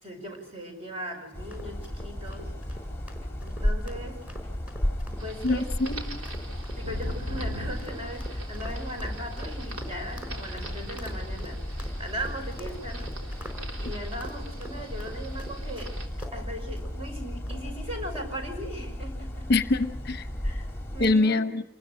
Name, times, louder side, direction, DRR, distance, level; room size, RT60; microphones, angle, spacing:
voice 1, 0.0-2.5 3.4-4.3 5.1-5.7 6.7-13.5 13.8-16.0 16.3-19.5 20.4-20.7 20.9-21.4, equal, 25° right, 3 dB, 5.9 m, -39 dB
sound 1, 1.3-21.1, equal, 10° left, 2.1 m, -35 dB
sound 2, 1.5-16.4 16.8-17.0 17.5-17.7 18.1-18.4, equal, 5° right, 4.8 m, -46 dB
sound 3, 5.2-16.1, equal, 80° right, 3.7 m, -42 dB
voice 2, 5.4-6.2 19.5-20.3 21.0-21.6, left 3 dB, 50° left, 11 dB, 0.8 m, -24 dB
27.5 x 21.0 x 6.4 m, 0.81 s
head